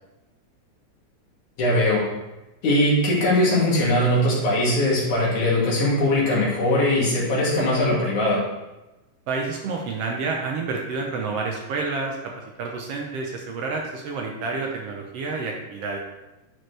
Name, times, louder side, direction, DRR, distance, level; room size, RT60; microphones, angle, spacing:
voice 1, 1.6-2.1 2.6-8.4, left 1 dB, 85° left, -5 dB, 3.6 m, -20 dB
voice 2, 9.3-12.2 12.6-16.0, right 4 dB, 70° right, 1 dB, 1.6 m, -29 dB
10.5 x 4.7 x 3.3 m, 1.0 s
omnidirectional pair, 3.4 m